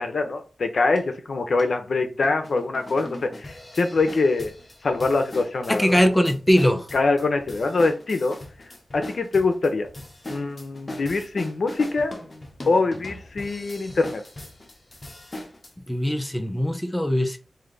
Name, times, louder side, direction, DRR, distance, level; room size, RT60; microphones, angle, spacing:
voice 1, 0.0-4.5 4.8-6.0 6.9-8.4 8.9-9.9 10.3-12.1 12.7-14.2, left 3 dB, 70° left, 0.7 m, -24 dB
sound 1, 1.0-1.1 1.6-1.7 2.2-15.7, left 1 dB, 35° left, 1.0 m, -40 dB
voice 2, 5.7-6.9 15.9-17.4, equal, 10° left, 0.6 m, -21 dB
3.3 x 2.7 x 3.8 m
wide cardioid pair, 90°, 0 cm